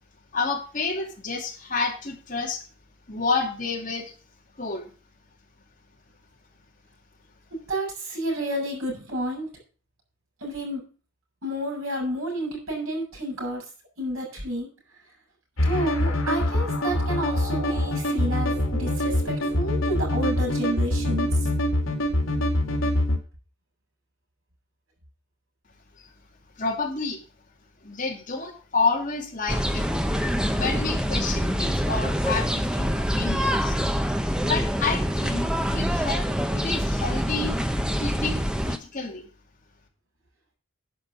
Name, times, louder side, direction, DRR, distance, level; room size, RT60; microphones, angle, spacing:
voice 1, 0.3-2.6 3.1-4.1 4.6-4.9 26.6-27.2 27.8-29.9 30.5-33.8 34.4-37.5 38.0-39.3, left 4 dB, 35° left, 0 dB, 2.7 m, -29 dB
voice 2, 7.7-9.5 10.4-10.8 11.4-13.6 14.0-14.7 15.6-21.3, right 1 dB, 80° right, 1 dB, 6.8 m, -30 dB
sound 1, 15.6-23.2, left 1 dB, 75° left, 2.5 m, -24 dB
sound 2, 29.5-38.8, equal, 5° right, 0.8 m, -25 dB
11.5 x 5.5 x 7.6 m, 0.37 s
head